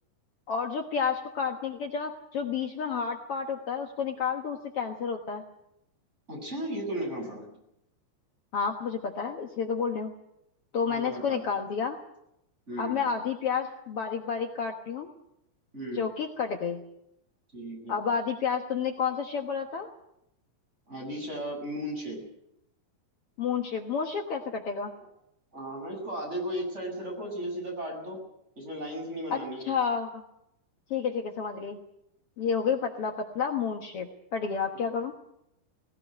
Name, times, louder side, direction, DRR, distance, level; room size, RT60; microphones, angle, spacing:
voice 1, 0.5-5.4 8.5-10.1 10.7-12.0 12.8-15.1 15.9-16.8 17.9-19.9 23.4-24.9 29.3-30.2 30.9-31.8 32.4-35.1, left 6 dB, 75° left, 4 dB, 1.3 m, -30 dB
voice 2, 6.3-7.5 10.8-11.4 12.7-13.0 15.7-16.1 17.5-18.0 20.9-22.2 25.5-28.2 28.6-29.6, right 1 dB, 15° right, 0 dB, 7.2 m, -35 dB
19.0 x 18.5 x 9.1 m, 0.81 s
omnidirectional pair, 4.8 m